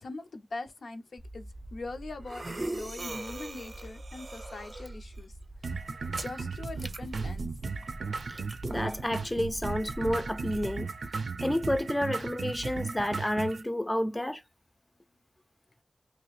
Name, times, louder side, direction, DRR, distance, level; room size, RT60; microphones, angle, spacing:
voice 1, 0.0-5.3 6.2-7.5 8.0-8.4, left 3 dB, 85° left, 0.5 m, -42 dB
sound 1, 1.2-10.7, right 2 dB, 40° right, 0.5 m, -41 dB
sound 2, 5.6-13.6, right 4 dB, 90° right, 0.4 m, -36 dB
voice 2, 8.3-10.9 11.4-14.4, left 1 dB, 15° left, 0.3 m, -30 dB
2.9 x 2.4 x 3.0 m
wide cardioid pair, 95°, 0 cm